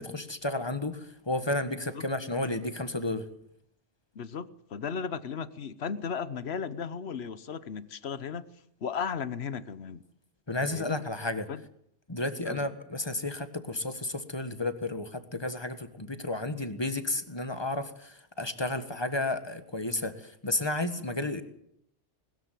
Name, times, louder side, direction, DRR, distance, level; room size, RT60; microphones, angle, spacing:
voice 1, 0.0-3.3 10.5-11.5 12.1-21.4, left 2 dB, 20° left, 10 dB, 1.6 m, -32 dB
voice 2, 4.1-8.4 8.8-10.0 10.5-11.0 11.5-11.6 12.4-12.7, left 6 dB, 60° left, 16 dB, 1.2 m, -35 dB
21.0 x 13.5 x 9.3 m, 0.71 s
omnidirectional pair, 1.2 m